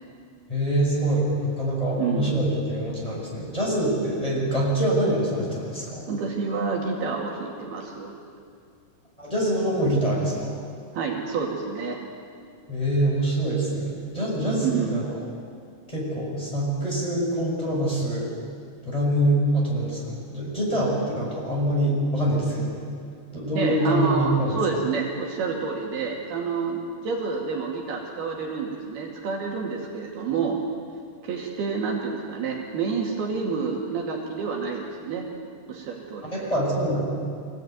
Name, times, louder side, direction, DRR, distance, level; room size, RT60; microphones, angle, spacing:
voice 1, 0.5-6.1 9.2-10.6 12.7-15.0 15.9-18.3 18.8-22.8 23.3-24.6 36.3-37.0, right 1 dB, 10° left, -5 dB, 6.5 m, -25 dB
voice 2, 2.0-2.3 6.1-8.1 10.9-12.0 14.6-15.0 23.6-30.6 31.2-35.3 35.7-36.5, right 5 dB, 70° right, -1 dB, 4.2 m, -28 dB
24.0 x 17.0 x 9.5 m, 2.3 s
omnidirectional pair, 4.7 m